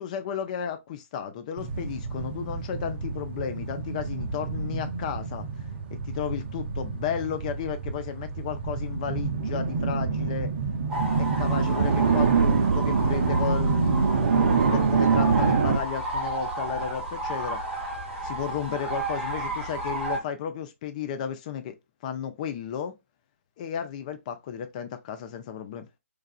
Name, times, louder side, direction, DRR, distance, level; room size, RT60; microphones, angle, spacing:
voice 1, 0.0-5.5 5.9-10.5 11.2-17.6 18.2-21.8 22.0-22.9 23.6-25.9, left 8 dB, 30° left, 0.4 m, -33 dB
sound 1, 1.6-15.8, right 5 dB, 45° right, 0.5 m, -26 dB
sound 2, 10.9-20.2, right 2 dB, 10° right, 1.2 m, -32 dB
3.2 x 2.3 x 2.2 m
figure-of-eight pair, 140°, 8 cm